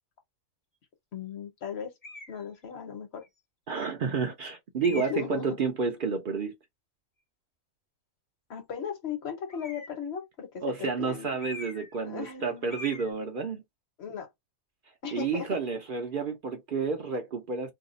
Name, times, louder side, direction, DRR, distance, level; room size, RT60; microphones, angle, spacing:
voice 1, 1.1-1.9 2.3-3.2 4.9-5.6 8.5-11.4 12.0-12.7 14.0-14.3 15.0-15.5, left 7 dB, 55° left, 1.2 m, -37 dB
sound 1, 2.0-2.4 3.2-3.3 4.8-5.4 9.5-10.1 11.4-12.0 12.2-12.4 12.7-13.1, left 3 dB, 35° left, 0.8 m, -43 dB
voice 2, 3.7-6.5 10.6-13.6 15.1-17.7, right 5 dB, 55° right, 0.6 m, -30 dB
2.7 x 2.3 x 3.9 m
omnidirectional pair, 1.4 m